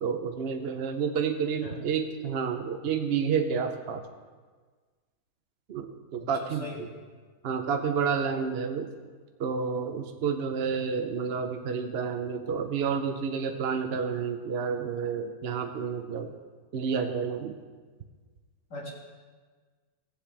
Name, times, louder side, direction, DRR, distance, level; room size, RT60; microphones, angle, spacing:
voice 1, 0.0-4.0 5.7-6.9 7.4-8.9 9.4-16.3 16.7-17.5, right 6 dB, 55° right, 5 dB, 0.7 m, -30 dB
voice 2, 6.1-6.8 10.6-10.8 18.7-18.9, left 2 dB, 80° left, -6 dB, 2.5 m, -41 dB
18.0 x 7.8 x 3.3 m, 1.5 s
omnidirectional pair, 1.7 m